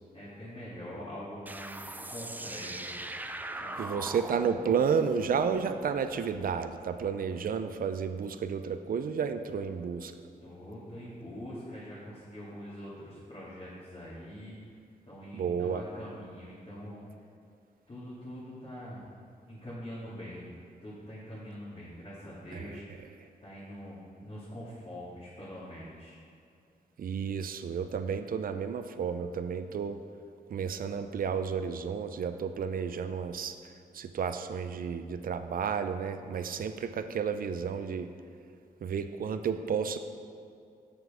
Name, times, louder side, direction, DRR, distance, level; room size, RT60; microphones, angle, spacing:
voice 1, 0.1-2.9 3.6-3.8 10.4-14.6 15.1-17.1 17.9-19.0 19.5-20.5 20.8-23.1 23.4-26.2, equal, 35° left, -11 dB, 2.2 m, -44 dB
sound 1, 1.5-6.7, right 2 dB, 10° right, 0.4 m, -41 dB
voice 2, 3.8-10.1 15.3-15.8 22.5-22.7 27.0-30.0 30.5-33.5 33.9-38.1 38.8-40.0, right 6 dB, 65° right, 9 dB, 0.5 m, -31 dB
7.1 x 6.5 x 5.0 m, 2.4 s
cardioid pair, 85°, 16 cm